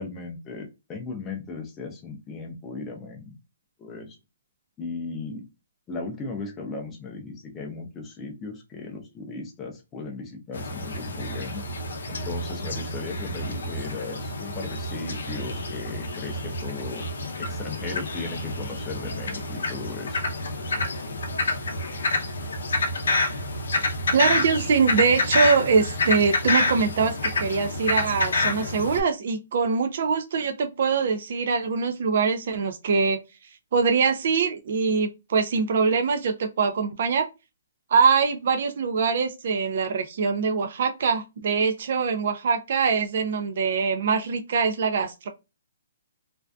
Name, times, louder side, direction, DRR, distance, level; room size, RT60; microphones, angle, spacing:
voice 1, 0.0-3.3 3.8-4.2 4.8-5.5 5.9-11.7 12.1-17.0 17.4-20.3, left 4 dB, 10° left, 0.5 m, -36 dB
sound 1, 10.5-29.0, left 2 dB, 80° left, 0.5 m, -28 dB
voice 2, 24.1-33.2 33.7-37.3 37.9-45.3, right 5 dB, 50° right, 0.3 m, -23 dB
2.5 x 2.2 x 2.2 m
hypercardioid pair, 170°, 0 cm